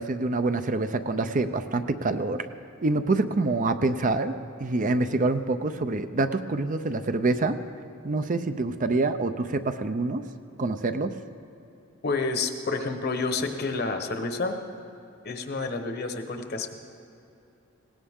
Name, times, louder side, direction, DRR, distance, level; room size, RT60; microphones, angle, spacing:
voice 1, 0.0-2.5 2.8-7.6 8.0-10.2 10.6-11.2, right 3 dB, 40° right, 9 dB, 0.5 m, -26 dB
voice 2, 12.0-14.6 15.2-16.7, left 3 dB, 50° left, 6 dB, 1.1 m, -29 dB
19.5 x 17.5 x 3.6 m, 2.9 s
head